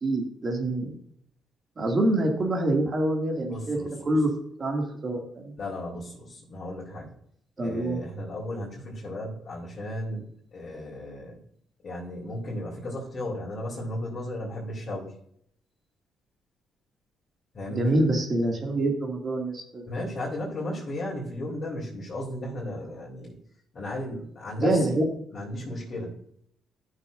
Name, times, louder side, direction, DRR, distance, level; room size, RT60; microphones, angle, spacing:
voice 1, 0.0-0.9 1.8-3.8 4.1-4.3 4.6-5.5 7.6-8.0 17.7-19.9 24.6-25.1, right 1 dB, 40° right, 1 dB, 2.4 m, -26 dB
voice 2, 3.5-4.2 5.6-7.1 7.6-11.4 11.8-15.1 17.5-17.9 19.9-23.4 23.7-25.0 25.3-26.2, left 1 dB, 45° left, -6 dB, 3.2 m, -35 dB
13.0 x 6.6 x 2.6 m, 0.69 s
cardioid pair, 90°, 0 cm